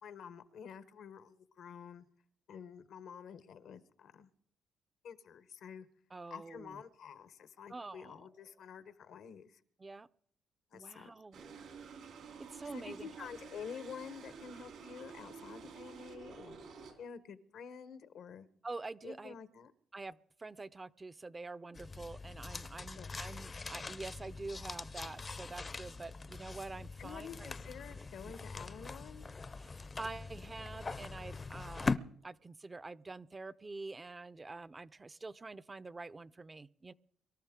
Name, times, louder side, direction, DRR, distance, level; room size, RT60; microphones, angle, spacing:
voice 1, 0.0-2.0 2.5-4.3 5.0-5.9 6.3-9.6 10.7-11.1 12.7-16.6 17.0-18.5 19.0-19.7 23.0-23.2 27.0-29.3, left 7 dB, 75° left, 13 dB, 1.0 m, -49 dB
voice 2, 6.1-6.8 7.7-8.2 9.8-10.1 10.7-11.4 12.4-13.3 18.6-19.3 19.9-27.5 29.6-36.9, right 3 dB, 30° right, 16 dB, 0.5 m, -46 dB
sound 1, 11.3-16.9, right 5 dB, 80° right, 3.3 m, -51 dB
sound 2, 21.7-32.0, left 4 dB, 35° left, 0.6 m, -42 dB
23.5 x 12.5 x 3.7 m, 0.63 s
supercardioid pair, 60°, 0 cm